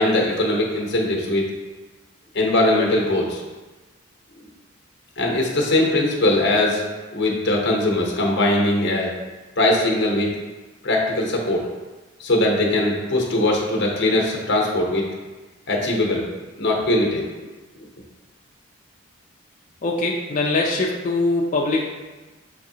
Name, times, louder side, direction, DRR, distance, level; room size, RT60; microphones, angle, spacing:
voice 1, 0.0-1.4 2.3-3.4 5.2-6.8 7.1-9.1 9.6-10.4 10.8-11.6 12.2-15.0 15.7-16.3 16.6-17.5, left 1 dB, 55° left, -1 dB, 0.8 m, -20 dB
voice 2, 19.8-21.9, left 2 dB, 35° left, -2 dB, 0.3 m, -22 dB
6.4 x 2.7 x 2.7 m, 1.2 s
head